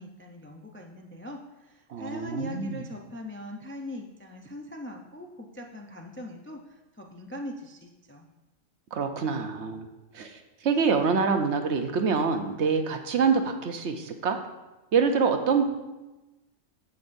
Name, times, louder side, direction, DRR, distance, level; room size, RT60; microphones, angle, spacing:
voice 1, 0.0-8.3, left 1 dB, 20° left, 1 dB, 0.3 m, -41 dB
voice 2, 1.9-2.8 8.9-9.9 10.1-14.4 14.9-15.7, right 5 dB, 65° right, 6 dB, 1.0 m, -26 dB
14.0 x 5.4 x 2.6 m, 1.1 s
omnidirectional pair, 1.3 m